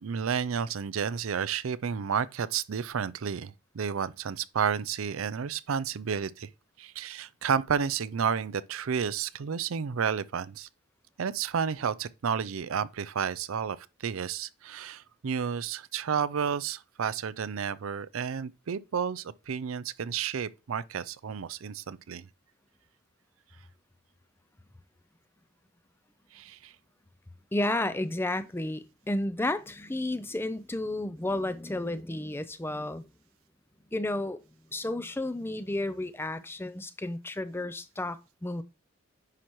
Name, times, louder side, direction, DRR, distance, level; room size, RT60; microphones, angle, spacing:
voice 1, 0.0-6.5 6.8-10.7 11.2-13.8 14.0-22.3 26.3-26.7, right 7 dB, 80° right, 0.5 m, -31 dB
voice 2, 27.5-33.1 33.9-34.4 34.7-38.6, left 1 dB, 10° left, 0.4 m, -32 dB
9.7 x 5.8 x 3.1 m
head